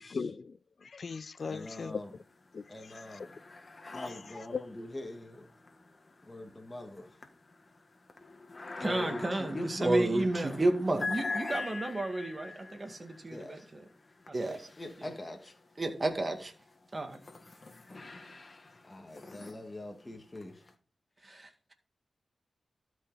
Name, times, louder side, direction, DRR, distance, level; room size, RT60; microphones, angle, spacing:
voice 1, 0.0-2.0 2.5-3.3 3.8-4.6, left 5 dB, 65° left, 0.4 m, -40 dB
sound 1, 1.4-2.1 2.4-15.6 16.2-20.7, left 3 dB, 45° left, 1.7 m, -44 dB
voice 2, 1.5-2.1 2.7-3.4 3.9-5.5 6.2-7.2 8.2-8.3 8.6-9.9 13.3-13.7 14.8-15.5 18.9-20.6 21.2-21.5, left 1 dB, 25° left, 1.8 m, -43 dB
voice 3, 8.8-13.9 14.3-14.7 15.0-15.1 15.8-16.5 16.9-17.2 21.2-21.7, right 2 dB, 35° right, 2.0 m, -31 dB
12.5 x 5.6 x 4.1 m
cardioid pair, 60°, 0 cm